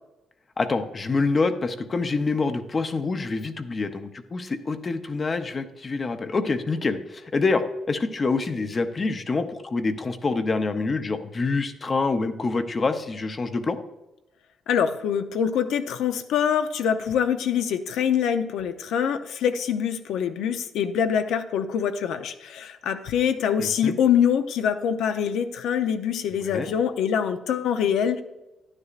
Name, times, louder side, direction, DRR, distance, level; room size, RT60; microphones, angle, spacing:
voice 1, 0.6-7.6 7.9-13.8 23.6-24.0 26.5-26.7, left 3 dB, 30° left, 8 dB, 0.6 m, -26 dB
voice 2, 14.7-28.2, left 8 dB, 85° left, 8 dB, 0.6 m, -24 dB
10.5 x 9.8 x 2.4 m, 0.98 s
cardioid pair, 125°, 0 cm